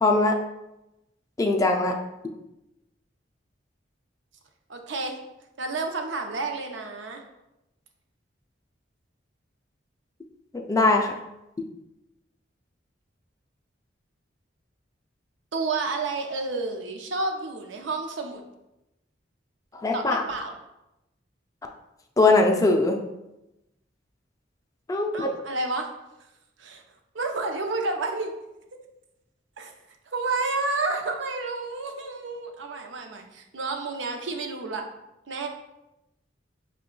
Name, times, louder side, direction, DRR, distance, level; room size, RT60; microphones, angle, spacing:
voice 1, 0.0-0.4 1.4-2.0 10.5-11.1 19.7-20.2 22.2-23.0 24.9-25.3, left 2 dB, 20° left, 3 dB, 0.3 m, -21 dB
voice 2, 4.7-5.1 5.6-7.2 15.5-18.4 19.9-20.5 25.1-25.9 26.6-26.8 27.1-28.3 29.6-29.7 30.1-34.8 35.3-35.5, right 3 dB, 80° right, 4 dB, 0.6 m, -30 dB
5.1 x 2.2 x 3.7 m, 0.93 s
head